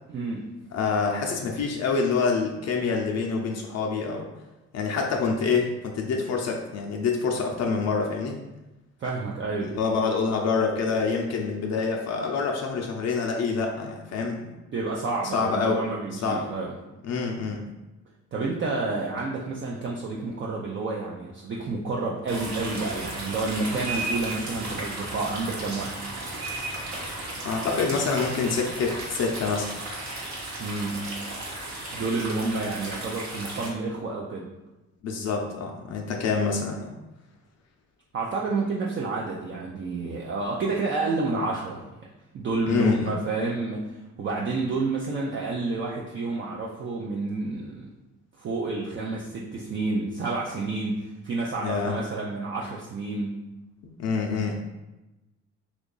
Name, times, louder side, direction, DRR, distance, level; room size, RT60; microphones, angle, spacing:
voice 1, 0.1-0.5 9.0-9.8 14.7-16.7 18.3-25.9 30.6-31.1 31.9-34.5 38.1-41.8 42.3-47.9 48.4-53.4, right 3 dB, 40° right, -3 dB, 0.5 m, -29 dB
voice 2, 0.7-4.3 4.7-8.4 9.6-14.5 15.3-15.8 16.2-16.4 17.0-17.6 27.4-29.7 35.0-36.9 42.7-43.2 51.6-52.0 54.0-54.5, left 4 dB, 60° left, 1 dB, 0.5 m, -26 dB
sound 1, 22.3-33.7, right 2 dB, 70° right, 1.0 m, -35 dB
2.8 x 2.4 x 3.8 m, 1.0 s
cardioid pair, 90°, 30 cm